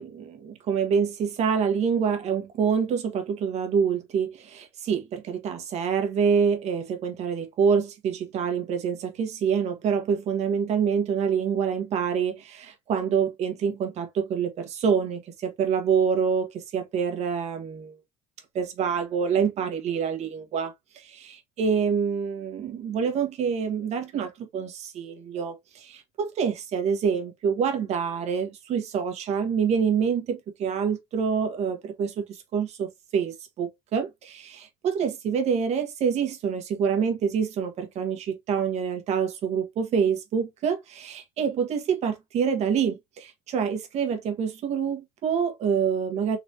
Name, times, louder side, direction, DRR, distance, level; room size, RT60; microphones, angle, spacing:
voice 1, 0.0-18.0 18.5-46.4, right 6 dB, 45° right, 1.5 m, -26 dB
4.0 x 3.1 x 2.8 m
cardioid pair, 145°, 16 cm